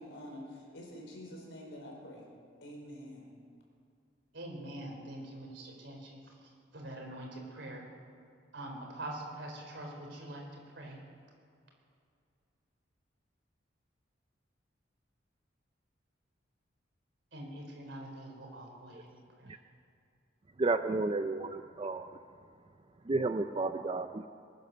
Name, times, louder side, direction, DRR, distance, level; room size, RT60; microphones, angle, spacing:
voice 1, 0.0-2.3 2.6-3.3, equal, 80° left, -1 dB, 4.5 m, -47 dB
voice 2, 4.3-6.2 6.7-7.9 8.5-10.4 10.8-11.0 17.3-19.5, right 1 dB, 65° right, 0 dB, 4.0 m, -44 dB
voice 3, 20.6-22.2 23.1-24.3, right 3 dB, 30° right, 9 dB, 0.4 m, -32 dB
22.5 x 9.5 x 6.8 m, 2.4 s
head